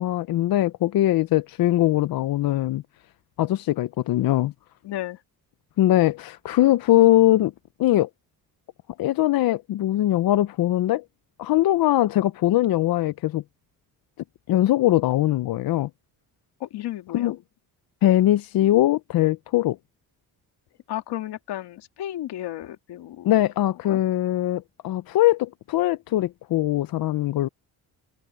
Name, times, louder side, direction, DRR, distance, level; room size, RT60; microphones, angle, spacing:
voice 1, 0.0-2.8 3.4-4.5 5.8-7.5 7.8-8.1 9.0-11.0 11.4-13.4 14.5-15.9 17.1-17.4 18.0-19.8 23.2-27.5, left 14 dB, 65° left, 0.6 m, -21 dB
voice 2, 4.8-5.2 16.6-17.4 20.9-23.3 23.9-24.0, left 13 dB, 90° left, 2.4 m, -33 dB
cardioid pair, 140°, 39 cm